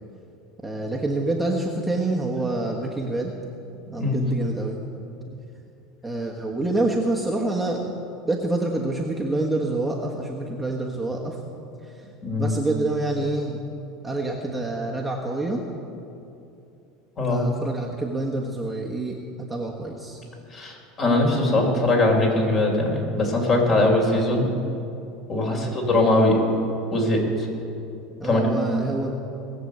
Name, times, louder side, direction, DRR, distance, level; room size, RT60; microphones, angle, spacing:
voice 1, 0.6-3.3 3.9-4.8 6.0-7.9 8.3-11.4 11.9-12.0 12.4-13.6 14.0-15.6 17.2-20.2 25.5-25.7 28.2-29.1, right 2 dB, 5° right, -3 dB, 1.4 m, -27 dB
voice 2, 20.5-24.5 25.3-26.4 26.9-27.5 28.2-28.6, left 2 dB, 35° left, 0 dB, 4.0 m, -21 dB
19.5 x 6.9 x 8.0 m, 2.7 s
supercardioid pair, 115°, 0 cm